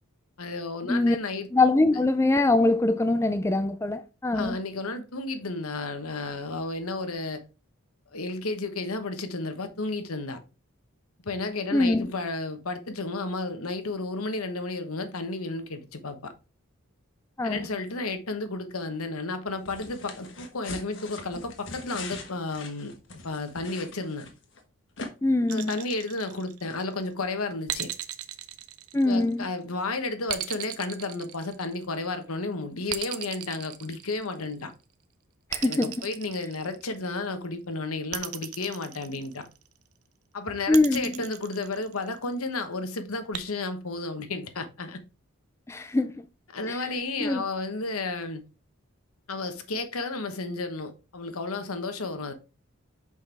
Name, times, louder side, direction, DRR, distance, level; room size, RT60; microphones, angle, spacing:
voice 1, 0.4-1.5 4.3-7.4 8.1-10.4 11.2-16.3 17.4-22.9 23.2-24.3 25.5-27.9 29.0-34.7 35.6-39.5 40.3-45.0 46.5-48.4 49.3-52.3, left 3 dB, 85° left, 1.2 m, -32 dB
voice 2, 1.5-4.6 11.7-12.1 17.4-17.7 25.2-25.8 28.9-29.5 35.5-35.9 40.7-41.1 45.7-46.3 46.7-46.8 47.2-47.4, left 2 dB, 10° left, 0.3 m, -23 dB
sound 1, 19.7-24.6 25.0-25.1, left 3 dB, 55° left, 1.3 m, -41 dB
sound 2, 25.5-26.9 27.7-29.5 30.3-32.0 32.9-34.6 35.5-37.1 38.1-39.7 40.7-42.2 43.3-43.4, right 12 dB, 85° right, 0.7 m, -36 dB
6.3 x 5.3 x 3.4 m
head